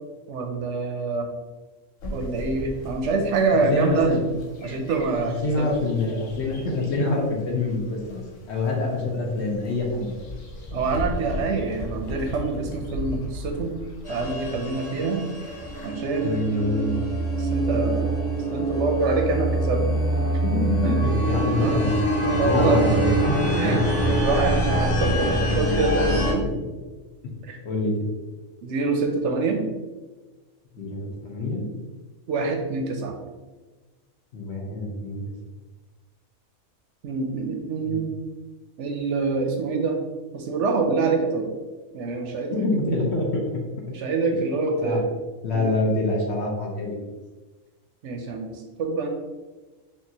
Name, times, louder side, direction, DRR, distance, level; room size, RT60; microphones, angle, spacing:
voice 1, 0.3-1.3 2.1-4.1 4.6-5.7 10.7-13.7 14.1-15.2 15.8-16.4 17.4-18.1 18.5-19.9 20.8-20.9 21.6-21.9 22.2-22.8 23.6-26.5 27.4-27.6 28.6-29.6 32.3-33.1 37.0-38.1 38.8-40.0 40.3-41.5 41.9-42.6 43.9-45.1 45.5-45.7 48.0-49.1, right 3 dB, 70° right, 2 dB, 0.8 m, -25 dB
sound 1, 2.0-15.9, equal, 80° left, 1.1 m, -37 dB
voice 2, 3.7-4.2 5.3-10.2 16.2-17.0 20.4-21.9 22.4-23.8 26.4-26.5 27.6-28.1 30.7-31.7 34.3-35.2 37.9-38.0 42.5-43.6 44.8-45.0 45.4-47.0, left 2 dB, 60° left, 0 dB, 1.0 m, -26 dB
sound 2, 14.0-26.3, right 1 dB, 30° left, 1.3 m, -24 dB
5.4 x 2.4 x 2.8 m, 1.2 s
omnidirectional pair, 1.4 m